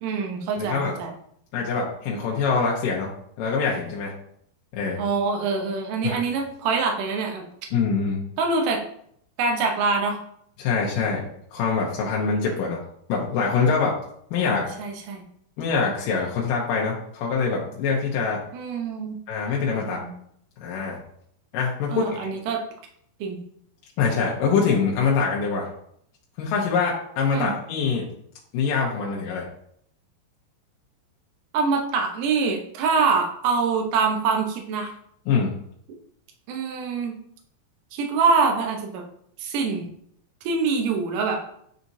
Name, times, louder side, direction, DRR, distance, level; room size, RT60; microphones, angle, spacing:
voice 1, 0.0-1.1 5.0-7.4 8.4-8.8 9.4-10.2 14.4-15.2 18.5-19.2 19.8-20.1 21.9-22.6 23.2-23.4 27.3-27.5 31.5-34.9 36.5-37.2 37.9-39.0 39.4-39.9 40.5-41.4, right 4 dB, 70° right, 2 dB, 2.3 m, -25 dB
voice 2, 0.6-0.9 1.5-3.1 3.4-4.1 4.7-5.0 6.0-6.2 7.7-8.2 10.6-11.2 11.5-12.8 13.1-14.0 14.3-14.7 15.6-18.4 19.3-20.0 20.6-21.0 21.5-22.3 24.0-25.7 26.4-28.1 28.5-29.5 35.3-35.5, left 5 dB, 70° left, -3 dB, 2.4 m, -24 dB
9.2 x 4.4 x 2.7 m, 0.67 s
omnidirectional pair, 4.5 m